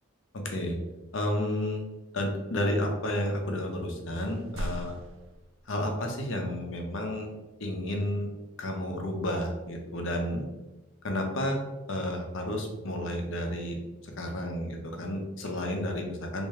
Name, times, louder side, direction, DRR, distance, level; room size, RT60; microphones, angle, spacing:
voice 1, 0.3-0.8 1.1-1.8 2.1-4.9 5.7-7.3 7.6-8.3 8.6-10.5 11.0-11.6 11.9-13.8 14.0-16.5, left 1 dB, 75° left, 2 dB, 0.7 m, -31 dB
sound 1, 3.7-3.9 4.1-6.2, right 1 dB, 75° right, 0.3 m, -40 dB
3.5 x 2.6 x 3.2 m, 1.1 s
head